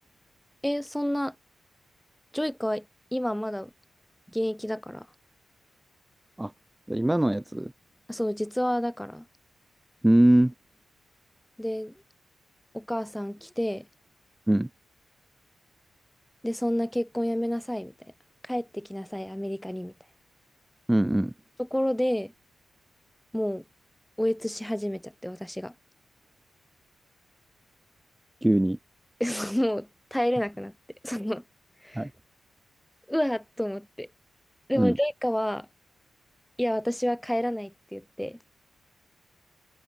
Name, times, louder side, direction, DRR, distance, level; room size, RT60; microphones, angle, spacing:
voice 1, 0.6-1.3 2.3-2.8 3.1-3.7 4.3-5.1 8.1-9.2 11.6-11.9 12.7-13.9 16.4-17.9 18.5-19.9 21.6-22.3 23.3-23.6 24.2-25.7 29.2-30.7 31.0-31.4 31.8-32.1 33.1-34.1 34.7-35.7 36.6-38.4, equal, 5° left, 8.0 m, -29 dB
voice 2, 6.9-7.7 10.0-10.5 14.5-14.7 20.9-21.3 28.4-28.8 31.9-32.1 34.7-35.0, right 1 dB, 10° right, 4.5 m, -22 dB
cardioid pair, 65°, 0 cm